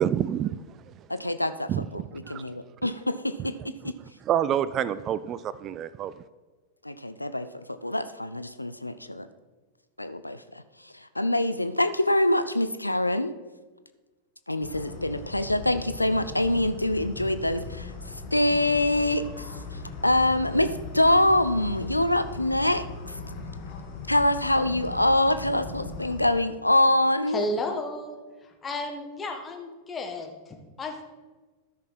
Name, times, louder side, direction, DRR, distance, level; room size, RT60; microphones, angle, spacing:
voice 1, 0.0-0.9 1.7-2.5 3.8-3.9 4.3-6.1, right 10 dB, 30° right, 16 dB, 0.3 m, -28 dB
voice 2, 1.1-3.9 6.8-7.5 7.8-9.3 10.0-13.3 14.5-23.2 24.1-27.5, left 1 dB, 85° left, 11 dB, 0.4 m, -25 dB
sound 1, 14.6-26.2, left 4 dB, 50° left, 1.9 m, -39 dB
voice 3, 27.3-28.2 28.4-31.0, left 2 dB, 20° left, 3 dB, 1.5 m, -33 dB
13.0 x 6.3 x 4.2 m, 1.3 s
figure-of-eight pair, 90°, 0 cm